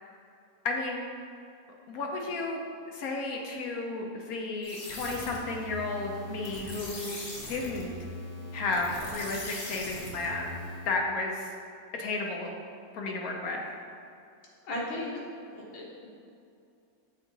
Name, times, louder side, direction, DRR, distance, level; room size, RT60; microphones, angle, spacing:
voice 1, 0.6-1.1 1.9-2.6 2.9-7.1 7.5-7.9 8.5-10.6 10.9-11.5 11.9-12.5 12.9-13.7, left 3 dB, 65° left, 0 dB, 0.9 m, -33 dB
sound 1, 4.6-11.0, left 1 dB, 45° left, 1.1 m, -41 dB
voice 2, 14.6-15.2 15.5-16.1, left 1 dB, 85° left, -4 dB, 1.9 m, -36 dB
7.0 x 3.6 x 3.9 m, 2.5 s
omnidirectional pair, 2.1 m